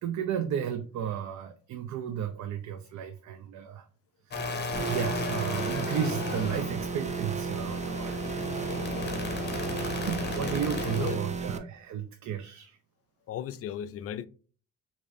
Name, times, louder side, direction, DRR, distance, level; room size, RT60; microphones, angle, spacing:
voice 1, 0.0-3.9 4.2-8.3 9.3-12.8, right 9 dB, 70° right, 0.5 m, -34 dB
sound 1, 4.3-11.2, left 4 dB, 35° left, 0.9 m, -35 dB
sound 2, 4.7-11.6, right 5 dB, 25° right, 0.5 m, -34 dB
voice 2, 13.3-14.3, left 10 dB, 50° left, 0.4 m, -35 dB
4.7 x 2.6 x 2.6 m
cardioid pair, 90°, 30 cm